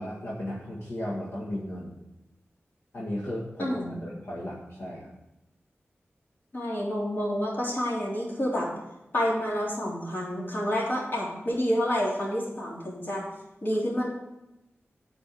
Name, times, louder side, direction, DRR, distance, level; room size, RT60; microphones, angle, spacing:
voice 1, 0.0-2.0 2.9-5.1, left 1 dB, 75° left, -6 dB, 1.9 m, -35 dB
voice 2, 3.6-4.0 6.5-8.7 9.1-13.3 13.6-14.1, equal, 50° left, -5 dB, 3.6 m, -28 dB
8.9 x 5.1 x 7.6 m, 0.92 s
wide cardioid pair, 90°, 5 cm